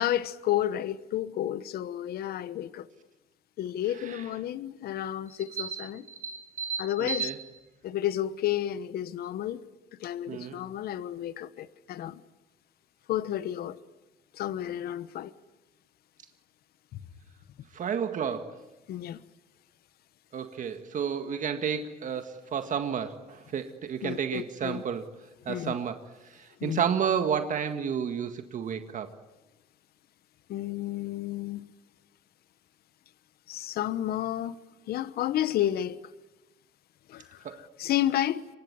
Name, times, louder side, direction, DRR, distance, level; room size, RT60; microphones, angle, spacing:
voice 1, 0.0-2.9 3.6-6.0 6.8-7.3 7.8-9.6 10.0-12.2 13.1-13.8 14.3-15.3 18.9-19.2 24.0-24.8 25.5-25.7 26.6-26.8 30.5-31.7 33.5-34.5 34.9-36.0 37.1-37.4 37.8-38.4, left 12 dB, 65° left, 1.1 m, -31 dB
voice 2, 5.6-7.4 10.3-10.6 17.7-18.6 20.3-25.2 25.5-29.1 37.4-37.6, right 7 dB, 50° right, 1.8 m, -31 dB
26.5 x 23.0 x 9.5 m
cardioid pair, 110°, 17 cm